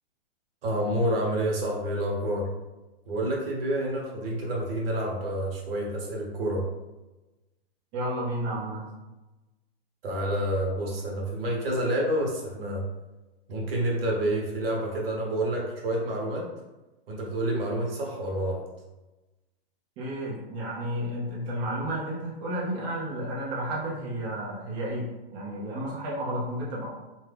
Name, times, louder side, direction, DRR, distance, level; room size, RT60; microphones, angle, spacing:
voice 1, 0.6-2.5 3.1-6.6 10.0-12.8 13.5-16.5 17.1-18.6, right 1 dB, 65° right, -2 dB, 1.1 m, -28 dB
voice 2, 7.9-8.9 20.0-26.9, right 1 dB, 30° right, -6 dB, 0.7 m, -32 dB
2.7 x 2.3 x 3.3 m, 1.1 s
hypercardioid pair, 140°, 32 cm